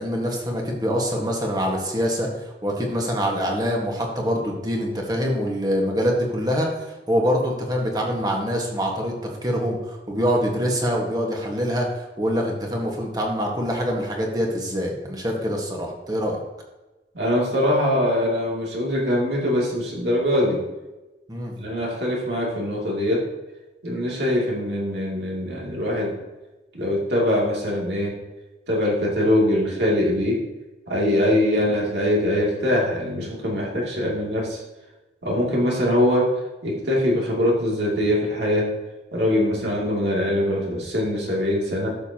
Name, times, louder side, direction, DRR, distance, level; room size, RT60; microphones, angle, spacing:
voice 1, 0.0-9.1 9.4-11.9 12.2-16.4 21.3-21.5 31.2-31.4 39.4-39.6, equal, 20° right, 0 dB, 1.6 m, -25 dB
voice 2, 17.1-20.6 21.6-23.3 23.8-26.2 26.7-28.2 28.7-30.4 30.9-34.6 35.2-36.3 36.6-38.7 39.1-41.9, left 1 dB, 70° right, -3 dB, 2.7 m, -22 dB
12.0 x 7.0 x 2.9 m, 1.1 s
head